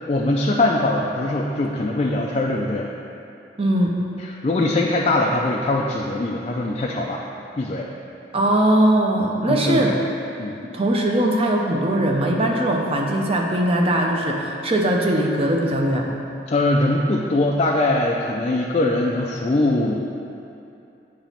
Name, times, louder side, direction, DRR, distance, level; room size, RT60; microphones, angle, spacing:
voice 1, 0.1-2.9 4.4-7.2 7.6-7.9 9.5-9.9 10.4-10.6 16.5-20.0, left 2 dB, 35° left, -3 dB, 0.4 m, -21 dB
voice 2, 3.6-3.9 8.3-9.9 10.6-16.1, right 1 dB, 30° right, 0 dB, 0.7 m, -20 dB
8.7 x 3.0 x 5.6 m, 2.7 s
head